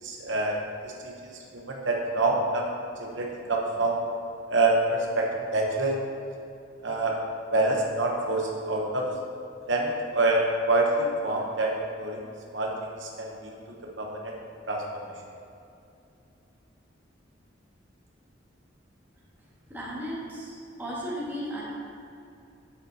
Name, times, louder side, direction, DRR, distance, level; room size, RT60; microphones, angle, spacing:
voice 1, 0.0-0.5 0.8-1.1 1.5-2.7 3.0-4.0 4.5-6.0 6.8-7.2 7.5-9.1 9.7-10.4 10.7-11.7 12.0-12.2 12.5-12.7 13.0-14.3 14.7-14.8, right 2 dB, 75° right, -1 dB, 1.0 m, -26 dB
voice 2, 19.7-21.6, equal, 10° right, -7 dB, 1.9 m, -35 dB
10.5 x 7.4 x 2.9 m, 2.6 s
head